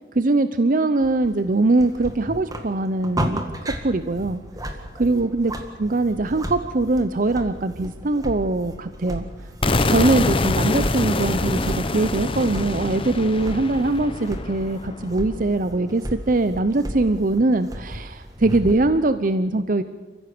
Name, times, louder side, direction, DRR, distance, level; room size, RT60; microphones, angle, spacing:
voice 1, 0.2-4.4 5.0-5.5 5.8-9.2 9.8-19.8, right 2 dB, 50° right, 11 dB, 0.7 m, -22 dB
sound 1, 1.0-18.8, equal, 20° right, 2.0 m, -35 dB
sound 2, 9.6-15.5, left 2 dB, 30° left, 1.0 m, -25 dB
29.0 x 15.5 x 6.8 m, 1.3 s
head